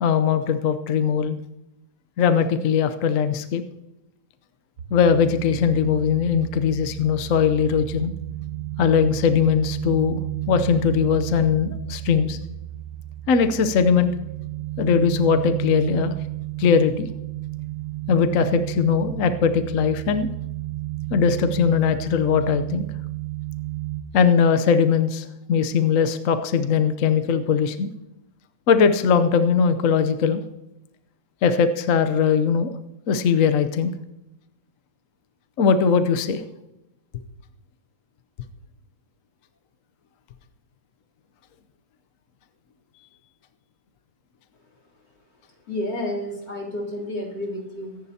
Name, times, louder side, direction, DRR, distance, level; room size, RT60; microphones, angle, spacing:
voice 1, 0.0-1.4 2.2-3.6 4.9-8.1 8.8-10.2 10.5-12.4 13.3-14.1 14.8-16.1 16.6-17.1 18.1-20.3 21.1-22.9 24.1-27.9 28.7-30.4 31.4-32.7 33.1-33.9 35.6-36.4, left 6 dB, 60° left, 9 dB, 1.0 m, -20 dB
sound 1, 4.8-24.0, right 17 dB, 55° right, 1.0 m, -32 dB
voice 2, 45.7-48.0, left 1 dB, 75° left, -1 dB, 3.9 m, -30 dB
23.0 x 10.5 x 2.8 m, 0.91 s
omnidirectional pair, 1.9 m